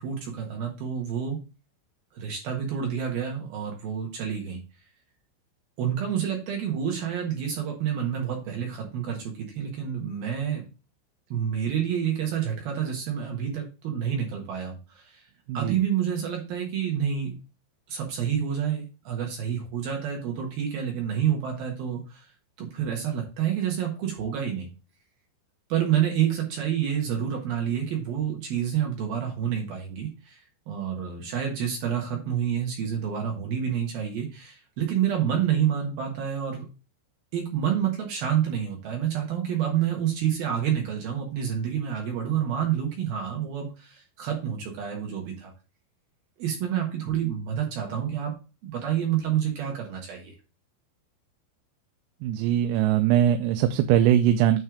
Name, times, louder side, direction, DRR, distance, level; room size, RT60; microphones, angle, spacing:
voice 1, 0.0-1.4 2.1-4.6 5.8-10.6 11.3-15.2 15.5-17.3 17.9-22.3 22.6-24.7 25.7-36.6 37.3-45.5 46.4-48.3 48.6-50.3, right 9 dB, 65° right, 1 dB, 2.6 m, -28 dB
voice 2, 52.2-54.6, right 11 dB, 90° right, 7 dB, 3.3 m, -21 dB
9.2 x 3.3 x 4.8 m, 0.31 s
omnidirectional pair, 5.9 m